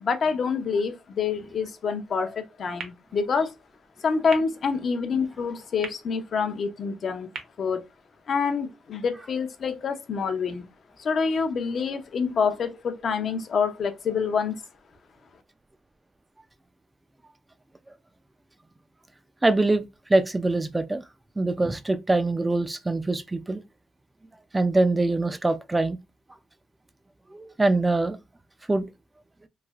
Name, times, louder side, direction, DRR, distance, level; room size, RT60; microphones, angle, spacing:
voice 1, 0.0-3.5 4.0-7.3 7.6-7.8 8.3-10.6 11.0-14.6, left 5 dB, 55° left, 0.6 m, -27 dB
sound 1, 2.8-8.7, right 5 dB, 55° right, 0.8 m, -45 dB
voice 2, 19.4-19.8 20.1-21.0 21.4-23.6 24.5-26.0 27.3-28.2 28.7-28.9, right 2 dB, 15° right, 0.4 m, -23 dB
3.1 x 2.6 x 2.4 m
cardioid pair, 90°, 0 cm